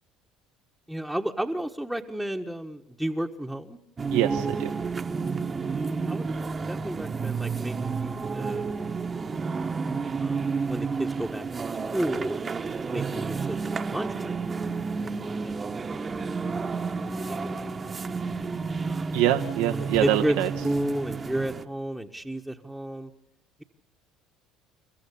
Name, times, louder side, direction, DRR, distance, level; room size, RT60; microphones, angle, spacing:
voice 1, 0.9-3.8 5.8-6.3 6.7-8.7 10.2-11.5 11.9-12.4 12.9-14.3 15.0-15.9 16.6-17.7 18.0-18.1 18.9-19.2 19.7-20.3 20.6-23.1, right 1 dB, ahead, 0 dB, 1.4 m, -32 dB
sound 1, 4.0-21.6, right 4 dB, 30° right, 1.3 m, -31 dB
voice 2, 4.1-4.7 19.1-20.5, right 13 dB, 80° right, 5 dB, 1.1 m, -24 dB
29.5 x 14.5 x 8.4 m, 0.79 s
supercardioid pair, 85°, 0 cm